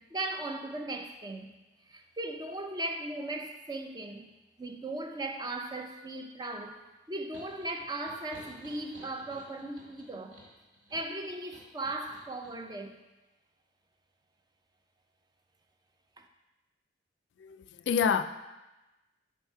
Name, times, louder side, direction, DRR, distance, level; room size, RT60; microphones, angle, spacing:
voice 1, 0.0-1.6 1.8-4.3 4.6-10.4 10.9-13.0 16.2-16.3, right 2 dB, 20° right, 4 dB, 0.5 m, -38 dB
sound 1, 7.3-12.6, equal, 80° right, 2.3 m, -54 dB
voice 2, 17.4-18.2, left 7 dB, 65° left, 11 dB, 0.3 m, -28 dB
7.2 x 4.7 x 4.4 m, 1.1 s
head